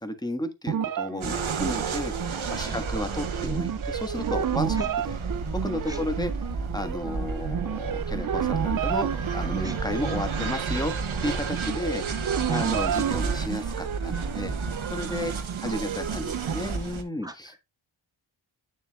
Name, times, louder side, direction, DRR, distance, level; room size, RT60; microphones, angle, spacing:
voice 1, 0.0-5.2 5.5-10.9 11.2-17.5, left 1 dB, 10° left, 1.4 m, -33 dB
sound 1, 0.7-16.5, right 9 dB, 45° right, 0.4 m, -32 dB
sound 2, 1.2-17.0, right 4 dB, 75° right, 1.3 m, -32 dB
voice 2, 16.5-17.6, right 1 dB, 10° right, 1.7 m, -43 dB
9.3 x 6.9 x 2.3 m
wide cardioid pair, 75°, 48 cm